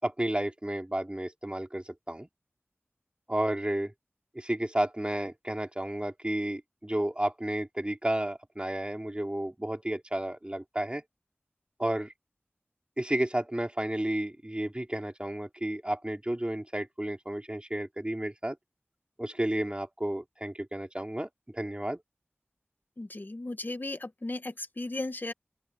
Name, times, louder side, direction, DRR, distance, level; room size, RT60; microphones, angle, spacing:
voice 1, 0.0-2.3 3.3-3.9 4.3-11.0 11.8-12.1 13.0-18.6 19.2-22.0, right 1 dB, 25° right, 4.0 m, -32 dB
voice 2, 23.0-25.3, left 2 dB, 45° left, 1.4 m, -36 dB
open air
wide cardioid pair, 40°, 5 cm